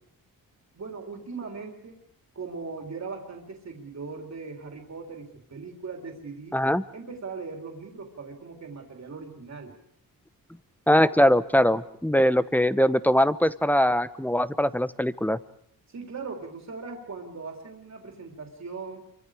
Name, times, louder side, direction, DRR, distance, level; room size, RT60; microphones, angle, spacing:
voice 1, 0.7-2.0 2.3-6.6 6.9-9.8 15.9-19.0, right 4 dB, 50° right, 2 dB, 3.4 m, -39 dB
voice 2, 6.5-6.8 10.9-15.4, equal, 5° left, 14 dB, 1.0 m, -22 dB
28.5 x 24.5 x 5.0 m, 0.69 s
cardioid pair, 75°, 36 cm